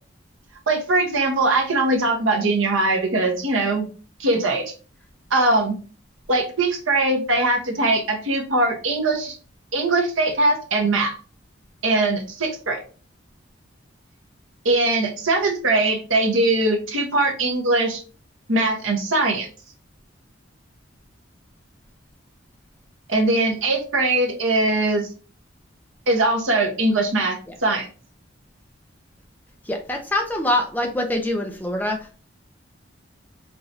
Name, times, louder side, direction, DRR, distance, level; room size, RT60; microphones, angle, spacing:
voice 1, 0.7-3.9 4.2-4.7 5.3-5.7 6.3-9.4 9.7-11.1 11.8-12.8 14.6-18.0 18.5-19.5 23.1-25.1 26.1-27.9, right 2 dB, 85° right, 2 dB, 1.1 m, -21 dB
voice 2, 29.7-32.0, left 1 dB, 10° left, 3 dB, 0.5 m, -24 dB
4.8 x 3.1 x 2.6 m, 0.37 s
head